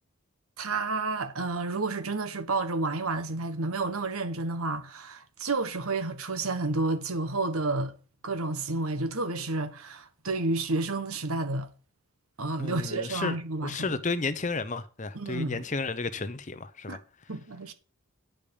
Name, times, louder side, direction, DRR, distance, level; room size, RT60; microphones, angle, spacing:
voice 1, 0.6-7.9 8.2-11.7 12.4-14.0 15.1-15.6 16.9-17.0 17.3-17.7, right 3 dB, 85° right, 1.4 m, -30 dB
voice 2, 12.6-13.4 13.6-17.0, left 3 dB, 35° left, 0.7 m, -32 dB
10.5 x 5.0 x 7.0 m
head